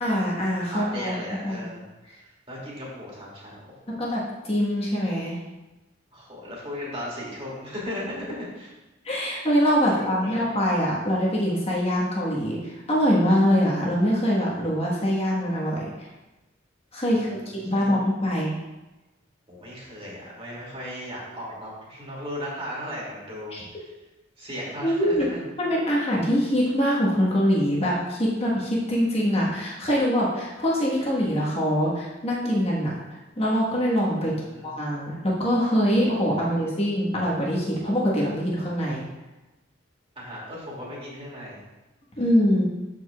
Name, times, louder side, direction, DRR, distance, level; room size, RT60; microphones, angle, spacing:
voice 1, 0.0-1.2 1.4-1.7 3.9-5.4 9.0-16.1 16.9-18.5 23.5-23.6 24.8-25.3 25.6-34.4 34.6-39.0 42.2-42.6, equal, 30° left, -4 dB, 1.3 m, -24 dB
voice 2, 0.6-2.1 2.5-4.0 6.1-8.7 9.9-10.5 17.1-18.0 19.5-23.9 24.4-25.5 34.2-34.7 40.2-41.6, equal, 30° right, -5 dB, 2.3 m, -37 dB
13.0 x 4.8 x 2.3 m, 1.0 s
head